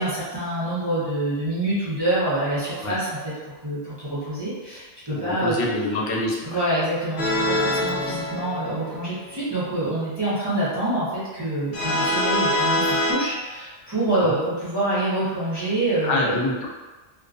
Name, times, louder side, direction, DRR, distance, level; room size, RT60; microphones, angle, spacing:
voice 1, 0.0-5.6 6.4-16.4, right 1 dB, 25° right, -12 dB, 0.7 m, -26 dB
voice 2, 5.1-6.6 11.9-12.0 14.2-14.3 16.0-16.7, left 2 dB, 90° left, -2 dB, 0.9 m, -26 dB
sound 1, 7.2-9.2 11.7-13.1, left 1 dB, 65° left, 0.8 m, -24 dB
2.4 x 2.2 x 2.4 m, 1.2 s
omnidirectional pair, 1.2 m